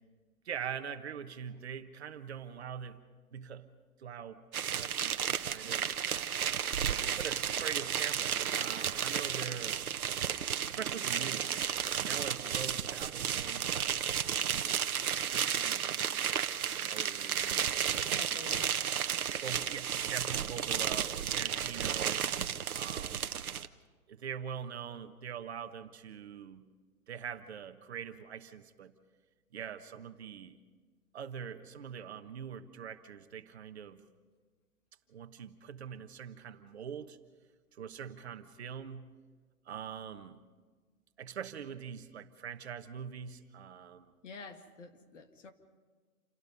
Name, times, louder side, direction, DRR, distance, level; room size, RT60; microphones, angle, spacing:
voice 1, 0.4-3.0 3.3-3.7 4.0-4.4 4.7-5.9 7.1-9.8 10.7-11.7 12.0-14.0 15.1-18.1 18.8-22.3 22.7-23.3 24.1-26.7 27.1-28.9 29.5-30.6 31.1-34.0 35.1-37.2 37.7-39.1 39.6-40.4 41.2-44.1, right 8 dB, 45° right, 8 dB, 1.3 m, -43 dB
sound 1, 4.5-23.7, right 8 dB, 75° right, 1.1 m, -33 dB
voice 2, 17.9-18.8 44.2-45.5, left 4 dB, 55° left, 6 dB, 2.3 m, -49 dB
28.5 x 17.5 x 5.4 m, 1.4 s
hypercardioid pair, 155°, 44 cm